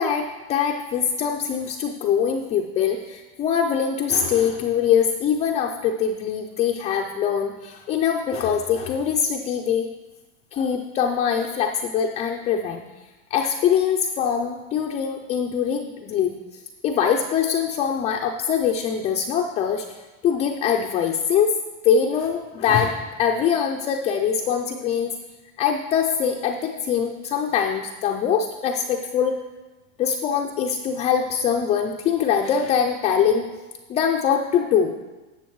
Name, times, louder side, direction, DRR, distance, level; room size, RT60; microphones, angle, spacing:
voice 1, 0.0-9.9 10.5-12.8 13.3-16.3 16.8-19.9 20.2-21.5 21.8-25.1 25.6-29.4 30.0-33.4 33.9-35.0, left 7 dB, 20° left, 2 dB, 0.3 m, -23 dB
11.5 x 7.3 x 4.6 m, 1.2 s
supercardioid pair, 150°, 38 cm